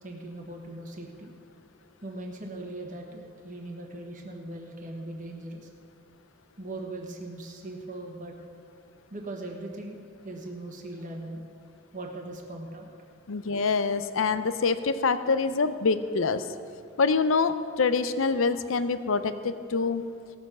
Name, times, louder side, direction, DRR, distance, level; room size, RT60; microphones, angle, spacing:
voice 1, 0.0-1.3 2.0-5.7 6.6-8.3 9.1-11.4 11.9-12.9, right 2 dB, 40° right, 0 dB, 1.3 m, -39 dB
voice 2, 13.3-16.5 17.0-20.1, left 4 dB, 75° left, 12 dB, 0.6 m, -25 dB
16.5 x 6.9 x 6.2 m, 2.4 s
head